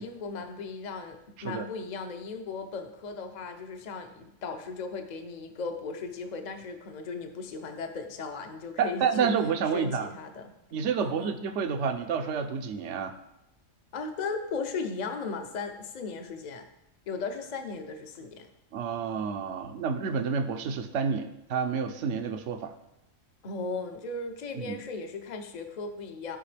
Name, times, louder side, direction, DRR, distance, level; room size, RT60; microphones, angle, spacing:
voice 1, 0.0-9.3 9.7-10.5 11.0-11.4 13.9-16.7 17.1-18.5 23.4-26.4, left 4 dB, 40° left, 6 dB, 0.8 m, -37 dB
voice 2, 8.8-10.1 10.7-13.1 18.7-22.7 24.5-24.8, right 6 dB, 70° right, 7 dB, 1.0 m, -29 dB
13.5 x 5.1 x 3.4 m, 0.85 s
omnidirectional pair, 1.3 m